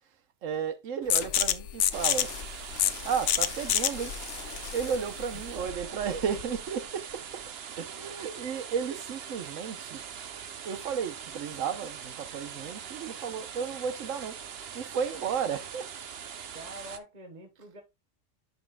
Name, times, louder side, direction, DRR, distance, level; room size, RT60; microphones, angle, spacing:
voice 1, 0.4-2.3 3.0-4.1 4.7-7.4 7.8-10.0 10.6-14.4 14.7-15.9, right 7 dB, 85° right, 1.2 m, -33 dB
voice 2, 1.0-1.4 5.5-6.0 16.5-17.8, right 1 dB, 35° right, 1.4 m, -46 dB
sound 1, 1.1-6.6, left 10 dB, 75° left, 1.0 m, -29 dB
sound 2, 1.9-17.0, right 7 dB, 55° right, 1.0 m, -42 dB
11.0 x 5.4 x 2.3 m
omnidirectional pair, 1.3 m